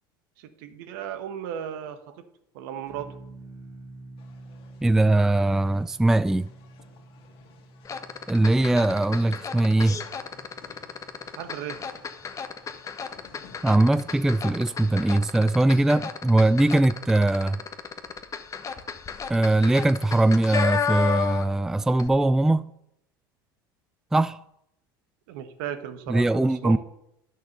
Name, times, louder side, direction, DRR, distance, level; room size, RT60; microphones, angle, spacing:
voice 1, 0.4-2.2 2.5-3.1 11.3-11.8 25.3-26.8, right 9 dB, 70° right, 1.5 m, -35 dB
sound 1, 2.9-13.4, right 2 dB, 25° right, 2.8 m, -49 dB
sound 2, 4.2-14.9, left 6 dB, 50° left, 2.3 m, -54 dB
voice 2, 4.8-6.5 8.3-10.0 13.6-17.6 19.3-22.7 24.1-24.4 26.1-26.8, right 2 dB, 5° right, 0.3 m, -21 dB
sound 3, 7.8-21.6 21.9-22.1, left 6 dB, 30° left, 1.2 m, -33 dB
10.5 x 6.6 x 6.7 m
hypercardioid pair, 85°, 12 cm